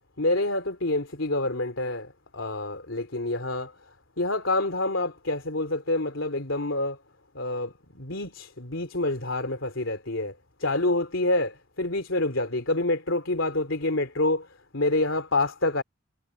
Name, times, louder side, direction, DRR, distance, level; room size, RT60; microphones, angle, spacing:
voice 1, 0.2-3.7 4.2-7.0 7.3-10.3 10.6-14.5 14.7-15.8, left 2 dB, 65° left, 3.1 m, -27 dB
head